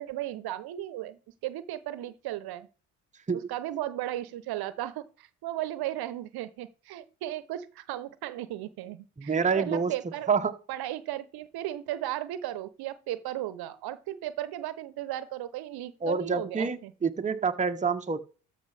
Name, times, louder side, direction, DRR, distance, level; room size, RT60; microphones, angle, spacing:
voice 1, 0.0-2.7 3.5-10.3 10.7-16.9, right 13 dB, 60° right, 0.9 m, -35 dB
voice 2, 9.2-9.9 10.3-10.5 16.0-18.2, right 5 dB, 15° right, 0.9 m, -27 dB
13.5 x 5.7 x 3.4 m
hypercardioid pair, 65°, 42 cm